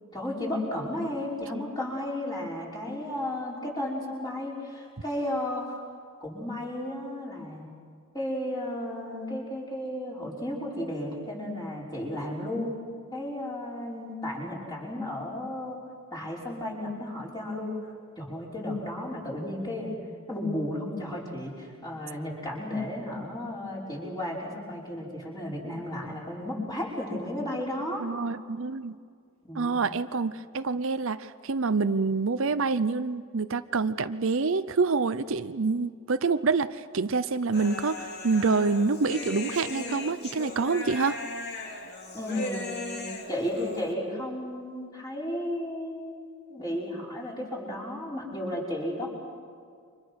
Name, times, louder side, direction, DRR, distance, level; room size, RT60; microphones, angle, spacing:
voice 1, 0.1-5.8 6.2-7.7 8.1-12.8 13.1-15.8 16.1-17.7 18.2-20.0 20.3-28.1 29.4-29.9 42.1-46.2 46.5-49.1, left 1 dB, 20° left, -4 dB, 5.7 m, -33 dB
voice 2, 28.0-28.9 29.5-41.2, right 4 dB, 60° right, 12 dB, 0.6 m, -27 dB
Human voice, 37.5-43.9, left 2 dB, 50° left, 2.6 m, -37 dB
30.0 x 25.5 x 6.4 m, 2.1 s
head